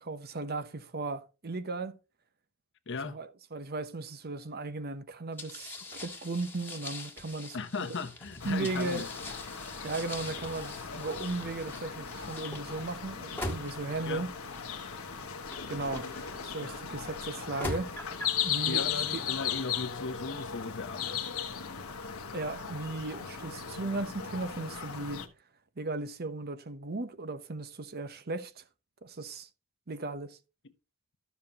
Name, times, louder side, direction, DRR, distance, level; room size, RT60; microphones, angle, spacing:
voice 1, 0.0-2.0 3.0-7.9 8.4-9.0 9.8-14.3 15.7-17.9 18.4-19.2 22.3-25.2 25.8-28.6 29.0-29.5 29.9-30.4, right 3 dB, 45° right, 0.9 m, -36 dB
voice 2, 2.9-3.2 7.5-9.1 14.1-14.3 18.7-21.3 21.6-21.7, left 4 dB, 55° left, 1.0 m, -37 dB
sound 1, 5.4-16.7 17.3-18.4, left 1 dB, 10° left, 1.6 m, -43 dB
sound 2, 8.4-25.3, left 7 dB, 75° left, 1.3 m, -37 dB
12.5 x 7.3 x 2.9 m
head